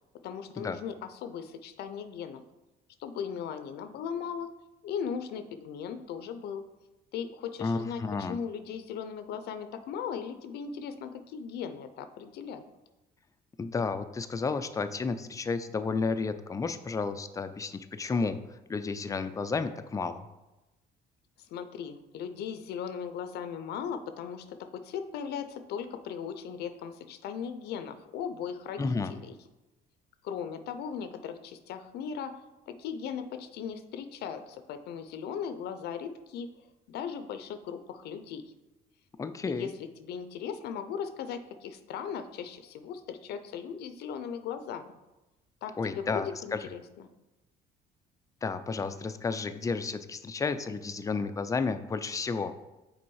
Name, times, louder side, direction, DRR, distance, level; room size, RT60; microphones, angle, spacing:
voice 1, 0.2-2.4 3.0-4.5 4.8-6.6 7.1-12.6 21.4-29.3 30.2-36.5 36.9-38.4 39.5-45.0 45.6-47.1, left 7 dB, 75° left, 10 dB, 0.6 m, -38 dB
voice 2, 7.6-8.4 13.6-18.4 18.7-20.2 28.8-29.1 39.2-39.7 45.8-46.6 48.4-52.5, left 4 dB, 20° left, 10 dB, 0.4 m, -32 dB
6.0 x 4.0 x 4.7 m, 1.0 s
cardioid pair, 110°, 17 cm